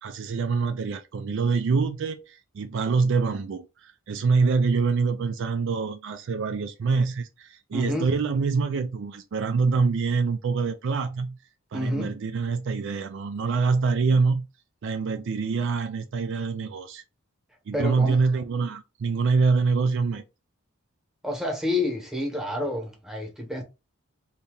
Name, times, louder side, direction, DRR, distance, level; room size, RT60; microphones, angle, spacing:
voice 1, 0.0-11.4 11.7-14.5 14.8-17.0 17.7-20.2, right 4 dB, 60° right, 0.4 m, -25 dB
voice 2, 7.7-8.1 11.7-12.2 17.7-18.2 21.2-23.6, left 1 dB, ahead, 1.0 m, -28 dB
2.8 x 2.7 x 3.5 m
head